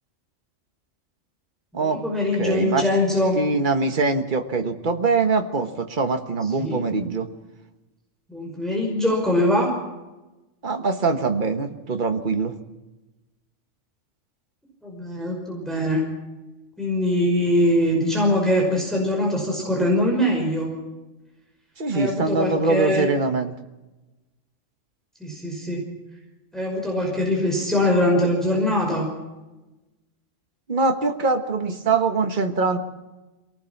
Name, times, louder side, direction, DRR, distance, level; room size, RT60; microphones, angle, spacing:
voice 1, 1.7-3.4 6.6-6.8 8.3-9.7 14.8-16.0 16.8-20.7 21.9-23.1 25.2-25.8 26.5-29.1, left 1 dB, ahead, -1 dB, 5.5 m, -22 dB
voice 2, 2.4-2.8 3.3-7.3 10.6-12.5 21.8-23.5 30.7-32.8, right 3 dB, 40° right, 6 dB, 1.5 m, -23 dB
24.0 x 18.5 x 6.0 m, 1.1 s
omnidirectional pair, 1.3 m